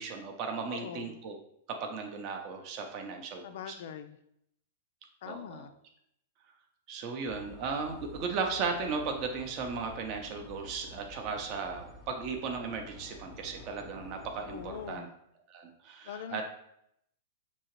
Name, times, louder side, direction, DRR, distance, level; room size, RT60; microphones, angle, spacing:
voice 1, 0.0-1.4 1.8-3.7 5.2-5.7 6.9-15.1 15.5-16.4, right 5 dB, 40° right, 3 dB, 0.6 m, -36 dB
voice 2, 0.7-1.1 3.4-4.2 5.2-5.7 14.5-15.1 16.0-16.4, left 8 dB, 65° left, 9 dB, 0.3 m, -42 dB
sound 1, 7.3-15.0, left 1 dB, ahead, 0.8 m, -50 dB
6.1 x 2.8 x 3.0 m, 0.75 s
hypercardioid pair, 150°, 0 cm